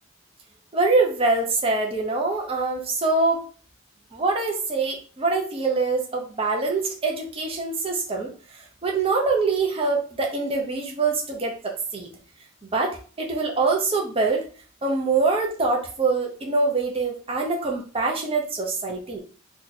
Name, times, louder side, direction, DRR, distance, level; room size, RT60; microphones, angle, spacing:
voice 1, 0.7-3.4 4.1-12.1 12.6-14.4 14.8-19.2, right 3 dB, 25° right, 0 dB, 0.6 m, -24 dB
2.7 x 2.3 x 4.0 m, 0.39 s
head